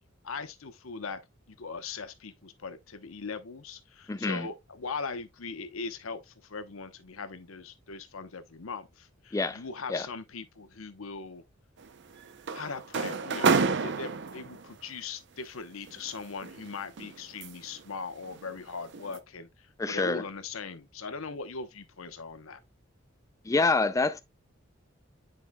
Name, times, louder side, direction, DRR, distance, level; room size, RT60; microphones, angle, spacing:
voice 1, 0.2-1.2 1.5-11.4 12.5-13.5 13.8-22.6, left 4 dB, 85° left, 0.9 m, -40 dB
voice 2, 4.1-4.5 9.3-9.6 9.9-10.1 19.8-20.2 23.5-24.2, left 3 dB, 15° left, 0.3 m, -26 dB
sound 1, 11.8-14.7 15.9-17.8 18.2-18.5 18.9-19.2, right 4 dB, 55° right, 0.6 m, -30 dB
9.5 x 4.9 x 2.2 m
head